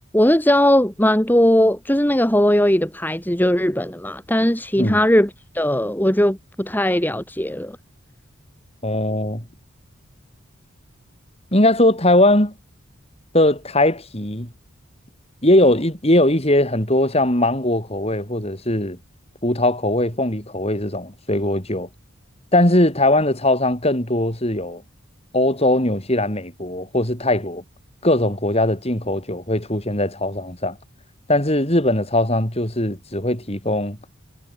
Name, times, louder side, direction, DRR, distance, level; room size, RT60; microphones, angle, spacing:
voice 1, 0.1-5.3 5.5-7.8, left 1 dB, 10° left, 2.3 m, -18 dB
voice 2, 8.8-9.4 11.5-12.5 13.3-14.5 15.4-19.0 19.4-21.9 22.5-24.8 25.3-27.6 28.0-30.8 31.3-34.0, left 1 dB, 30° left, 5.9 m, -20 dB
head